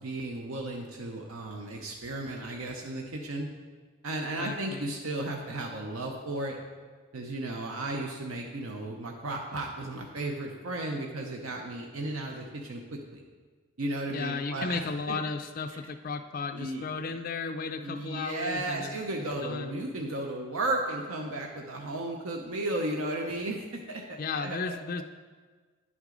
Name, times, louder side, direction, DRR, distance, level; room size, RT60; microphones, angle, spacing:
voice 1, 0.0-3.5 4.0-6.6 7.1-13.2 13.8-15.2 16.5-16.9 17.8-24.8, right 2 dB, 75° right, 2 dB, 0.7 m, -34 dB
voice 2, 4.4-4.9 14.1-19.0 19.4-19.8 24.2-25.0, left 4 dB, 40° left, 7 dB, 0.3 m, -34 dB
10.5 x 6.1 x 3.8 m, 1.5 s
head